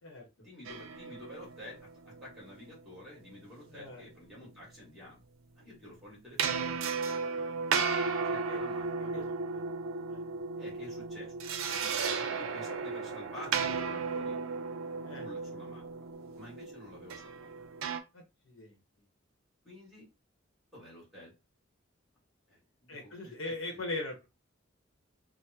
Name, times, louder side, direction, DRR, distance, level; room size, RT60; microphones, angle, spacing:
voice 1, 0.4-5.3 5.6-6.8 8.2-9.1 10.6-11.3 11.7-14.4 15.2-15.8 16.3-17.6 19.6-20.1 20.7-21.3 22.5-23.8, left 1 dB, ahead, -5 dB, 1.8 m, -50 dB
sound 1, 0.6-2.7 6.4-18.0, right 5 dB, 80° right, 0.5 m, -35 dB
voice 2, 3.7-4.1 8.5-8.6 9.1-9.2 9.5-9.6 10.1-10.2 15.0-15.2 18.1-18.8 22.9-24.3, left 2 dB, 75° left, 1 dB, 0.9 m, -40 dB
3.4 x 2.1 x 2.8 m, 0.26 s
head